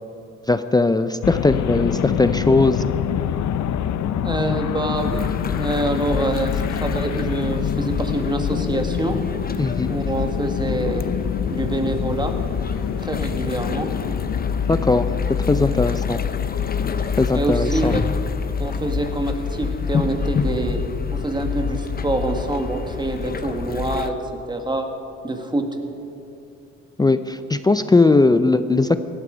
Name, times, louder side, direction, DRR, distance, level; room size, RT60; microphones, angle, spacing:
voice 1, 0.5-2.8 9.6-9.9 14.7-15.1 15.5-16.2 17.2-17.9 27.0-29.0, left 3 dB, 15° left, 11 dB, 0.4 m, -18 dB
sound 1, 1.2-17.3, left 9 dB, 65° left, 0.7 m, -27 dB
voice 2, 4.2-9.2 9.9-11.1 11.4-12.3 13.0-13.9 15.6-16.0 17.3-18.0 18.6-20.8 21.1-24.1 24.5-24.9 25.2-25.7, right 2 dB, 15° right, 4 dB, 1.7 m, -25 dB
sound 2, 5.0-24.1, left 6 dB, 30° left, 0.8 m, -27 dB
17.5 x 12.5 x 5.1 m, 2.6 s
cardioid pair, 90°, 30 cm